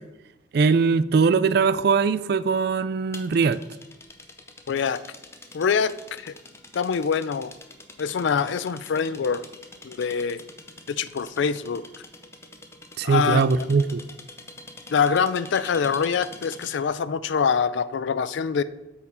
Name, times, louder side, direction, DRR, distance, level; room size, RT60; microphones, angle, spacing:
voice 1, 0.5-3.6 13.0-14.0, right 5 dB, 55° right, 14 dB, 0.3 m, -21 dB
sound 1, 3.1-16.9, left 2 dB, 15° left, 0.6 m, -45 dB
voice 2, 4.7-5.0 5.5-6.3 6.7-7.5 8.0-9.4 9.8-10.4 10.9-11.8 13.0-13.6 14.9-18.6, left 6 dB, 65° left, 16 dB, 0.4 m, -24 dB
8.4 x 4.6 x 5.5 m, 1.0 s
head